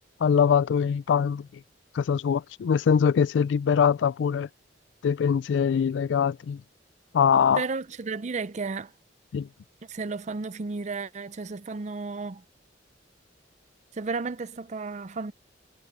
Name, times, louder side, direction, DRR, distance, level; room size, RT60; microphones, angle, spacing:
voice 1, 0.2-1.5 2.0-4.5 5.0-6.6 7.1-7.6 9.3-9.5, left 7 dB, 80° left, 0.3 m, -23 dB
voice 2, 7.5-8.9 9.9-12.4 13.9-15.3, right 4 dB, 40° right, 0.5 m, -33 dB
head